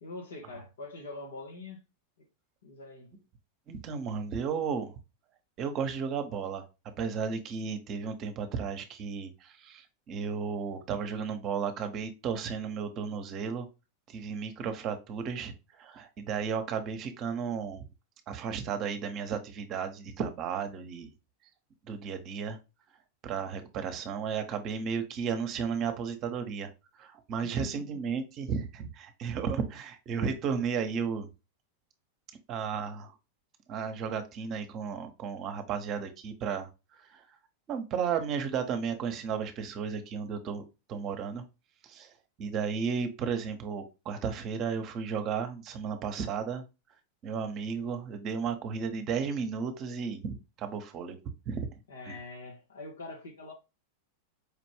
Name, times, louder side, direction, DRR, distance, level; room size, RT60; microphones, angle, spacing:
voice 1, 0.0-1.8 2.2-2.3 2.6-3.1 27.4-27.8 51.9-53.5, left 3 dB, 75° left, 1.4 m, -44 dB
voice 2, 3.7-4.9 5.6-6.6 7.0-13.7 14.1-17.8 18.3-21.1 21.8-22.6 23.2-26.7 27.0-31.3 32.5-33.1 33.7-37.2 37.7-41.4 41.8-46.6 47.2-51.2 51.5-51.7 52.1-52.2, right 6 dB, 40° right, 0.9 m, -34 dB
4.9 x 2.5 x 3.3 m
hypercardioid pair, 95°, 0 cm